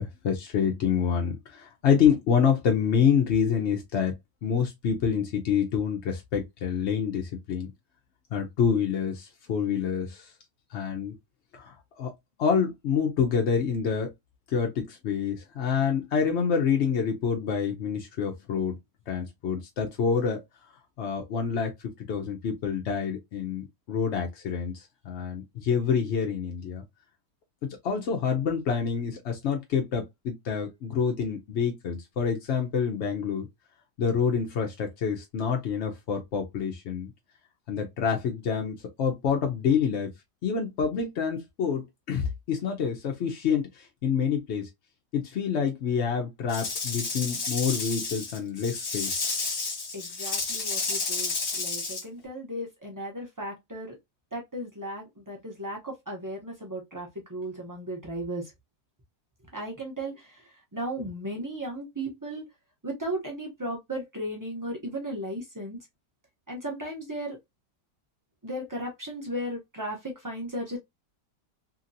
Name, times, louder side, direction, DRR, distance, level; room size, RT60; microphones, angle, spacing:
voice 1, 0.0-4.2 4.4-7.7 8.3-10.3 10.7-11.1 11.5-12.1 12.4-14.1 14.5-18.7 19.1-20.4 21.0-21.7 22.0-26.8 27.8-33.5 34.0-37.1 37.7-40.1 40.4-44.7 45.1-49.1, left 7 dB, 70° left, 0.6 m, -27 dB
Rattle / Rattle (instrument), 46.5-52.0, left 4 dB, 45° left, 1.1 m, -31 dB
voice 2, 49.9-54.0 54.3-58.5 59.5-60.3 60.7-62.4 62.8-65.8 66.5-67.4 68.4-70.8, right 1 dB, 30° right, 0.3 m, -35 dB
2.8 x 2.7 x 2.6 m
omnidirectional pair, 1.9 m